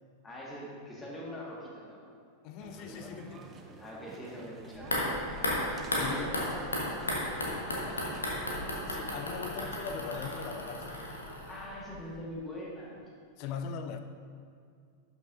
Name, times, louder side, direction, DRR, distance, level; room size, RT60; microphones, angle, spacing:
voice 1, 0.2-2.0 3.8-5.4 6.0-8.0 8.9-9.1 11.5-13.0, left 1 dB, 15° left, -4 dB, 1.8 m, -43 dB
voice 2, 2.4-3.5 5.9-6.3 8.7-11.0 13.4-14.0, left 6 dB, 45° left, 8 dB, 0.5 m, -40 dB
sound 1, 2.6-9.2, right 4 dB, 25° right, 0.7 m, -49 dB
sound 2, 4.8-11.9 12.1-12.2, left 1 dB, 75° left, 1.3 m, -34 dB
11.5 x 6.0 x 2.7 m, 2.3 s
figure-of-eight pair, 90°, 0 cm